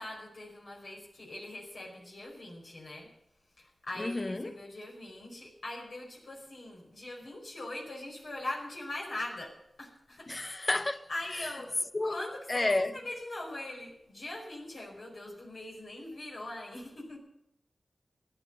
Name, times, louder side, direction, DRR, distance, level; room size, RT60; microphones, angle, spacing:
voice 1, 0.0-3.1 3.6-10.3 10.6-10.7 11.1-17.2, left 1 dB, 75° left, 4.9 m, -42 dB
voice 2, 4.0-4.6 10.3-11.1 11.9-12.2 12.5-12.9, left 2 dB, 40° left, 0.5 m, -30 dB
15.0 x 10.5 x 6.6 m
cardioid pair, 40°, 0 cm